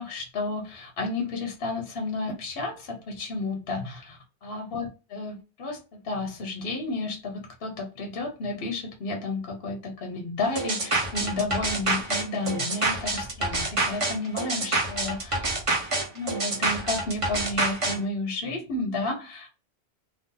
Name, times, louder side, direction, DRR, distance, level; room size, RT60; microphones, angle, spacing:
voice 1, 0.0-15.5 16.1-19.5, left 2 dB, 65° left, 2 dB, 0.9 m, -32 dB
sound 1, 10.6-18.0, right 2 dB, 35° right, 0.8 m, -27 dB
2.7 x 2.4 x 3.7 m, 0.33 s
omnidirectional pair, 1.1 m